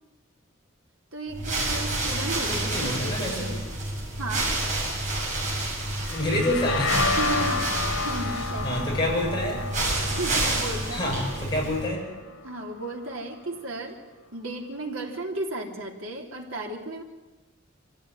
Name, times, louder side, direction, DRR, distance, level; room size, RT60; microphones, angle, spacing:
voice 1, 1.1-3.6 4.2-4.5 7.2-7.7 8.0-9.0 10.2-11.2 11.6-11.7 12.4-14.0 14.3-17.0, right 2 dB, 85° right, 1 dB, 3.6 m, -34 dB
sound 1, 1.3-11.9, right 2 dB, 40° right, 6.9 m, -29 dB
voice 2, 2.5-3.6 6.1-7.5 8.3-9.6 10.9-12.0, left 1 dB, 20° left, -3 dB, 7.3 m, -28 dB
sound 2, 6.0-13.6, left 4 dB, 80° left, 3.2 m, -32 dB
25.0 x 15.5 x 9.9 m, 1.1 s
head